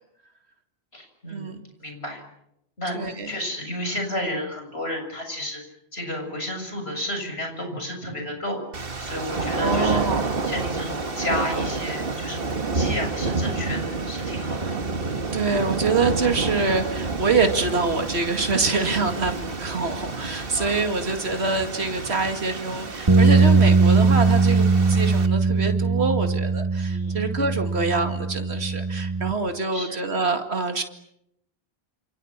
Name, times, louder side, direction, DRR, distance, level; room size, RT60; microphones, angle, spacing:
voice 1, 0.9-1.5 1.8-2.2 2.8-5.6 5.9-10.0 10.4-14.7 20.6-20.8 26.8-27.2 29.7-30.0, left 1 dB, 75° left, 4 dB, 7.4 m, -32 dB
voice 2, 2.9-3.3 9.6-10.3 15.3-30.8, right 4 dB, 80° right, 6 dB, 2.4 m, -25 dB
sound 1, 8.7-25.3, right 3 dB, 60° right, 2.0 m, -29 dB
sound 2, 23.1-29.3, right 4 dB, 25° right, 1.2 m, -20 dB
28.5 x 28.0 x 7.4 m, 0.80 s
omnidirectional pair, 1.1 m